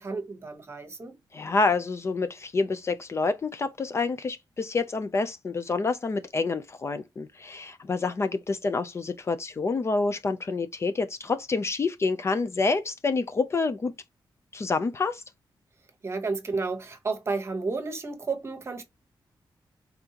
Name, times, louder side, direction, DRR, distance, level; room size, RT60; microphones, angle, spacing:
voice 1, 0.0-1.1 16.0-18.8, right 4 dB, 30° right, 1.1 m, -32 dB
voice 2, 1.3-13.9 14.5-15.2, left 3 dB, 35° left, 0.5 m, -28 dB
5.3 x 3.5 x 2.8 m
wide cardioid pair, 175°, 8 cm